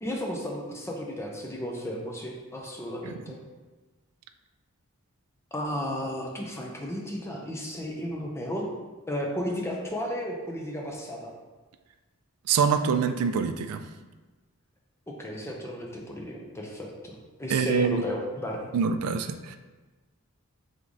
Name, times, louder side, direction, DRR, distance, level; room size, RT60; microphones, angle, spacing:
voice 1, 0.0-3.4 5.5-8.7 9.1-11.3 15.1-18.6, equal, 10° left, -1 dB, 0.6 m, -34 dB
voice 2, 12.5-13.8 17.5-18.0 18.7-19.6, right 6 dB, 80° right, 8 dB, 0.3 m, -25 dB
3.5 x 3.3 x 3.8 m, 1.2 s
head